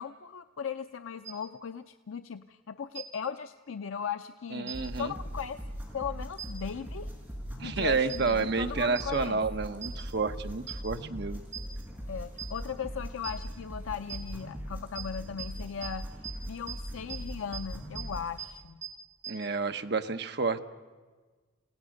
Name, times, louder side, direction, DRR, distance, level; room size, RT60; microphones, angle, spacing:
voice 1, 0.0-5.6 5.9-7.1 7.6-9.4 12.1-16.1 16.5-18.8, left 7 dB, 85° left, 10 dB, 0.5 m, -38 dB
sound 1, 1.2-1.3 2.9-3.0 4.7-4.8 6.4-6.5 8.1-8.2 8.9-9.0 9.8-9.9 10.7-10.8 11.5-11.6 12.4-12.5 13.2-13.3 14.1-14.2 14.9-15.0 15.4-15.5 15.8-15.9 16.2-16.3 16.7-16.8 17.1-17.2 17.5-17.6 17.9-18.0 18.4-18.5 18.8-18.9 19.2-19.3, right 9 dB, 35° right, 6.6 m, -37 dB
voice 2, 4.5-5.1 7.6-11.4 19.3-20.6, right 4 dB, 55° right, 8 dB, 0.9 m, -30 dB
sound 2, 4.7-18.4, equal, 5° right, 5.4 m, -40 dB
28.5 x 17.0 x 6.4 m, 1.4 s
head